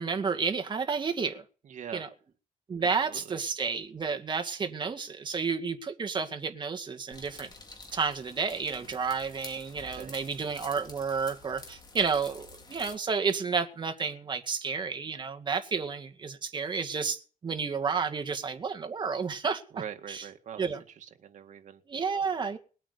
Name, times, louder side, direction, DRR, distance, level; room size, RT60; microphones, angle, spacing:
voice 1, 0.0-1.4 1.9-2.1 2.7-7.5 7.9-19.6 20.1-20.2 20.6-20.8 21.9-22.6, right 5 dB, 30° right, 2.1 m, -31 dB
voice 2, 1.6-2.1 3.1-3.4 9.9-10.2 19.7-21.8, right 8 dB, 60° right, 2.0 m, -43 dB
sound 1, 7.1-13.0, left 3 dB, 30° left, 4.3 m, -49 dB
20.5 x 8.9 x 6.9 m
wide cardioid pair, 160°, 15 cm